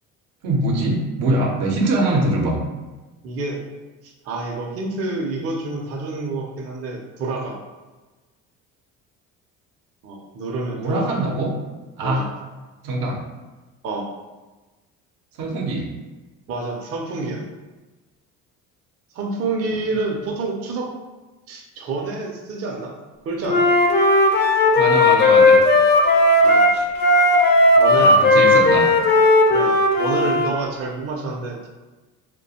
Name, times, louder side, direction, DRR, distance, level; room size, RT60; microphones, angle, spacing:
voice 1, 0.4-2.6 10.8-11.5 12.0-12.2 12.8-13.2 15.4-15.9 24.8-25.6 27.9-28.9, right 2 dB, 80° right, -1 dB, 0.7 m, -23 dB
voice 2, 3.2-3.6 4.0-7.6 10.0-11.2 12.0-12.3 13.8-14.1 16.5-17.4 19.1-20.9 21.5-22.9 23.2-23.7 26.4-26.9 27.8-28.2 29.5-31.7, right 3 dB, 45° right, -1 dB, 0.5 m, -28 dB
Wind instrument woodwind instrument, 23.5-30.5, left 2 dB, 35° left, 0.4 m, -15 dB
2.4 x 2.2 x 2.7 m, 1.2 s
cardioid pair, 100°, 33 cm